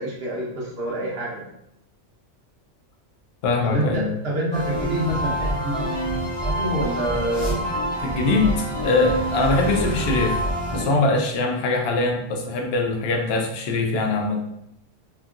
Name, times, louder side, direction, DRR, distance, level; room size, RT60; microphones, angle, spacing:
voice 1, 0.0-1.4 3.6-5.9 6.4-7.5, right 1 dB, 60° right, -3 dB, 1.0 m, -27 dB
voice 2, 3.4-4.1 8.0-10.4 10.7-14.4, left 3 dB, 65° left, 2 dB, 0.7 m, -22 dB
sound 1, 4.5-10.8, right 1 dB, 30° left, 0.6 m, -26 dB
2.9 x 2.6 x 2.4 m, 0.80 s
omnidirectional pair, 1.3 m